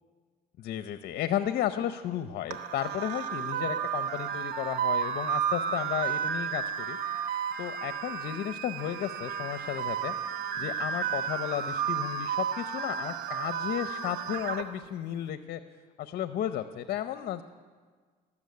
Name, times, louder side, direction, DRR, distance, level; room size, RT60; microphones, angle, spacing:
voice 1, 0.6-7.0 7.6-10.2 10.6-15.6 16.0-17.4, left 11 dB, 60° left, 11 dB, 0.7 m, -33 dB
sound 1, 2.5-14.6, right 7 dB, 80° right, 1.1 m, -32 dB
19.5 x 7.3 x 9.5 m, 1.5 s
cardioid pair, 110°, 17 cm